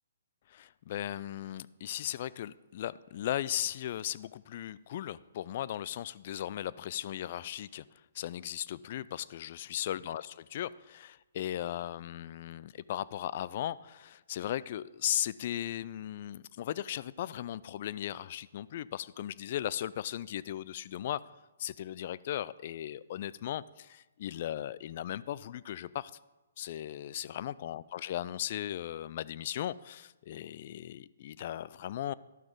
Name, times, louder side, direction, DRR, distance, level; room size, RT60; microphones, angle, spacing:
voice 1, 0.5-7.8 8.1-21.2 21.6-26.1 26.6-32.1, left 11 dB, 50° left, 19 dB, 0.3 m, -37 dB
11.5 x 6.1 x 5.1 m, 1.1 s
hypercardioid pair, 140°, 0 cm